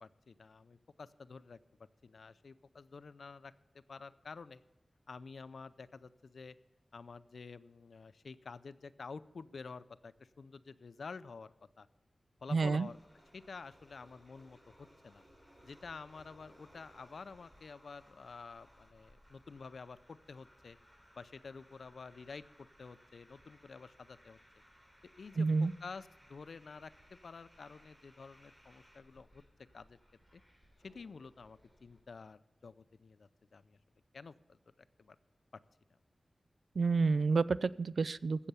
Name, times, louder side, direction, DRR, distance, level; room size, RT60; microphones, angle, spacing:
voice 1, 0.0-4.6 5.1-6.6 6.9-11.5 11.8-11.9 12.4-13.0 13.3-15.2 15.6-20.8 21.2-24.4 25.2-29.4 29.7-30.0 30.3-30.4 30.8-33.8 34.1-35.2, left 4 dB, 85° left, 14 dB, 0.5 m, -50 dB
voice 2, 12.5-12.9 25.4-25.7 36.8-38.5, right 4 dB, 80° right, 19 dB, 0.3 m, -29 dB
sound 1, 12.8-32.0, equal, 15° right, 3.4 m, -64 dB
15.5 x 6.8 x 7.0 m, 1.1 s
wide cardioid pair, 100°, 0 cm